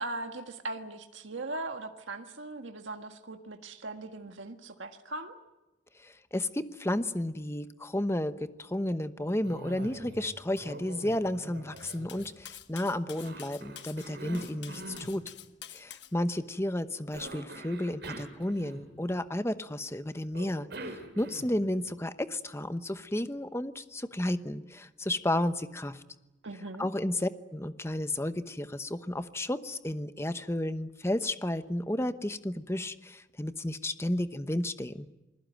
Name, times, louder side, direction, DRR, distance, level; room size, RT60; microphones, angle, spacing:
voice 1, 0.0-5.3 26.4-26.9, right 2 dB, 80° right, 5 dB, 1.6 m, -39 dB
voice 2, 6.0-15.2 15.7-26.0 26.8-35.1, left 1 dB, 15° left, 11 dB, 0.9 m, -32 dB
Cough, 9.4-10.3 10.6-12.6 13.2-15.1 17.1-19.1 20.3-21.7, right 1 dB, 60° right, 4.8 m, -44 dB
Cutlery silverware, 11.8-16.1, left 11 dB, 65° left, 1.2 m, -48 dB
27.5 x 21.0 x 9.2 m, 1.0 s
head